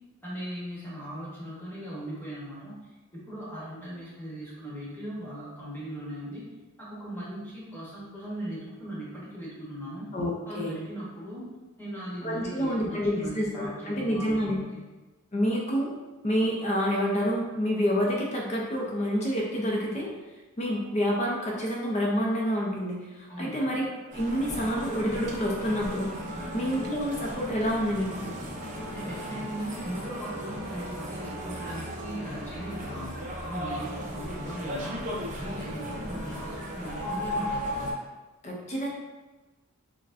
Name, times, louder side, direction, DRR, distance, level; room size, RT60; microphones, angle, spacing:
voice 1, 0.2-2.8 3.1-6.5 6.8-10.1 10.5-11.5 11.8-14.4 14.7-14.8 23.3-23.6 26.3-26.7 28.9-33.1 33.4-35.1 35.4-37.6, equal, 10° left, -8 dB, 1.1 m, -38 dB
voice 2, 10.1-10.8 12.2-14.6 15.3-15.9 16.2-20.1 20.6-23.9 24.1-26.1 26.5-28.3 38.4-38.9, equal, 30° left, -2 dB, 0.6 m, -28 dB
sound 1, 24.1-37.9, equal, 35° right, 0.6 m, -36 dB
6.5 x 2.2 x 2.5 m, 1.2 s
head